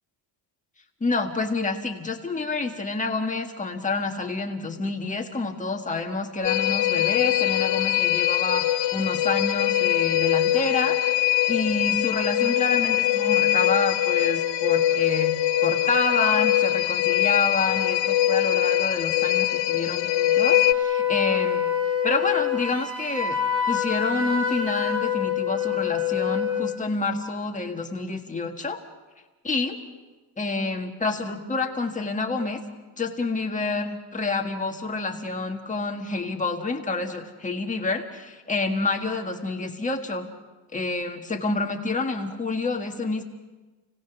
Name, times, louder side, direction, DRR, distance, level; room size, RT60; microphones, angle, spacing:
voice 1, 1.0-21.7 22.0-23.4 23.7-28.8 29.4-29.8 30.4-32.6 32.9-40.3 40.7-43.2, left 3 dB, 15° left, 2 dB, 1.6 m, -28 dB
sound 1, 6.4-20.7, left 13 dB, 85° left, 0.7 m, -22 dB
Wind instrument woodwind instrument, 20.4-26.8, left 8 dB, 35° right, 4.5 m, -25 dB
29.5 x 18.5 x 6.1 m, 1.2 s
cardioid pair, 175°, 44 cm